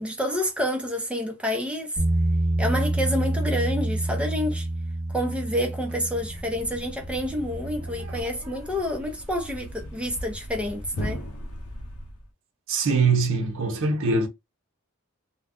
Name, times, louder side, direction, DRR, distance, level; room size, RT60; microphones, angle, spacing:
voice 1, 0.0-2.0 2.6-4.7 5.1-11.2, equal, 5° right, 0.6 m, -28 dB
Bass guitar, 2.0-8.2, right 1 dB, 15° left, 1.4 m, -28 dB
Thump thud, 6.1-12.3, equal, 80° left, 0.7 m, -38 dB
voice 2, 8.0-8.5 12.7-14.3, right 4 dB, 60° right, 0.7 m, -24 dB
2.4 x 2.1 x 3.5 m
head